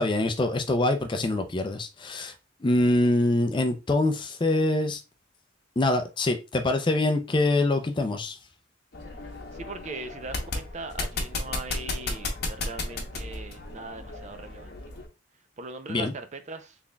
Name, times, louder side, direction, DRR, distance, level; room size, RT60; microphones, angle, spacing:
voice 1, 0.0-2.3 2.6-5.0 5.8-8.4 15.9-16.1, left 2 dB, 25° left, 0.4 m, -24 dB
sound 1, 8.9-15.1, left 2 dB, 55° left, 0.9 m, -34 dB
voice 2, 9.5-14.8 15.6-16.8, right 3 dB, 35° right, 0.5 m, -40 dB
4.0 x 3.4 x 2.2 m
head